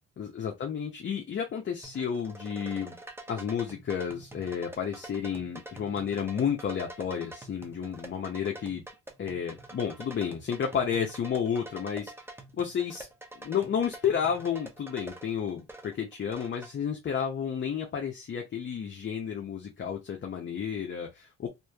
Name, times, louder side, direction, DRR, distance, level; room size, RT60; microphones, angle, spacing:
voice 1, 0.2-3.0 3.3-8.8 9.2-12.1 12.5-13.1 13.4-21.5, left 7 dB, 40° left, 0.6 m, -31 dB
sound 1, 1.8-16.7, right 2 dB, 10° right, 0.6 m, -46 dB
2.9 x 2.5 x 2.3 m
cardioid pair, 90°, 30 cm